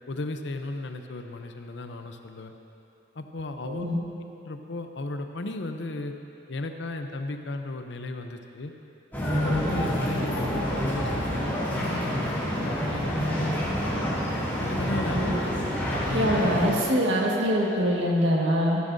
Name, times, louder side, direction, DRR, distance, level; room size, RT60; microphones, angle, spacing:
voice 1, 0.1-2.5 3.2-3.9 4.3-6.1 6.5-8.7 9.3-13.5 14.6-15.3 16.1-16.4, left 2 dB, 80° left, 6 dB, 0.7 m, -35 dB
voice 2, 3.6-4.0 15.1-15.4 16.1-18.8, equal, 85° right, -2 dB, 1.7 m, -24 dB
sound 1, 9.1-16.7, equal, 10° left, 2.4 m, -27 dB
14.0 x 12.5 x 2.7 m, 2.8 s
head